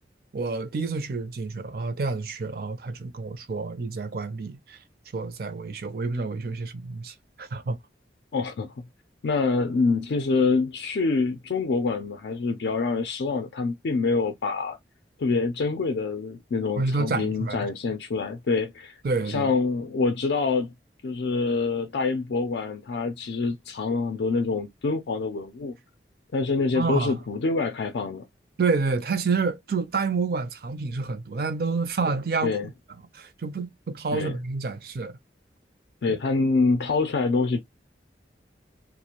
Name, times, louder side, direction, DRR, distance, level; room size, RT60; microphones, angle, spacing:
voice 1, 0.3-4.8 5.1-7.8 16.8-17.7 19.0-19.5 26.7-27.2 28.6-32.6 33.1-35.1 36.1-36.2, right 4 dB, 55° right, 0.4 m, -28 dB
voice 2, 8.3-8.8 9.2-14.8 15.2-19.0 19.3-20.7 21.0-25.7 26.3-28.2 32.4-32.7 34.1-34.4 36.0-37.6, left 4 dB, 75° left, 0.4 m, -26 dB
2.4 x 2.0 x 2.8 m
head